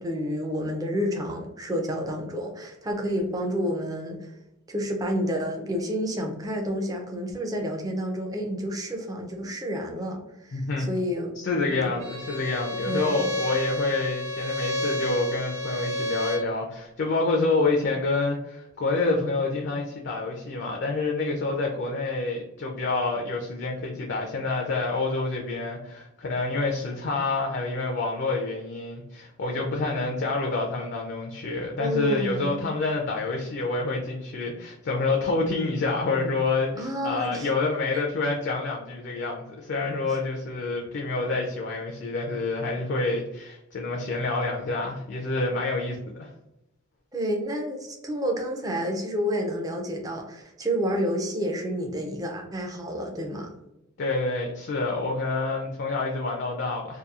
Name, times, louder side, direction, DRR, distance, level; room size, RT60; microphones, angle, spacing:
voice 1, 0.0-4.3 4.7-11.3 11.7-11.9 12.8-13.2 31.8-32.7 36.8-37.5 37.9-38.1 47.1-53.5, equal, 15° right, 1 dB, 0.3 m, -30 dB
voice 2, 10.5-10.9 11.4-46.3 54.0-57.0, left 3 dB, 55° left, 0 dB, 0.4 m, -28 dB
Bowed string instrument, 12.0-16.5, left 1 dB, 55° right, 0.8 m, -30 dB
2.8 x 2.2 x 2.3 m, 0.88 s
head